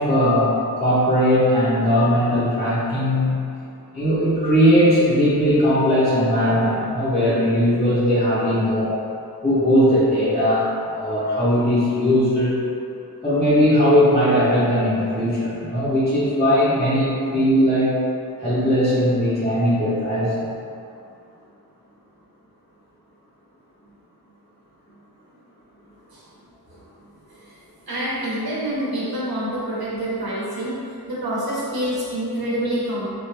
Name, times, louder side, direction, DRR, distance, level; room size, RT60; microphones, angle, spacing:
voice 1, 0.0-3.4 3.9-8.9 9.4-12.5 13.2-17.9 18.4-20.5, equal, 15° left, -12 dB, 0.9 m, -19 dB
voice 2, 27.9-30.7 31.1-33.1, right 1 dB, 65° right, -8 dB, 1.2 m, -26 dB
4.2 x 2.6 x 3.3 m, 2.5 s
wide cardioid pair, 90°, 39 cm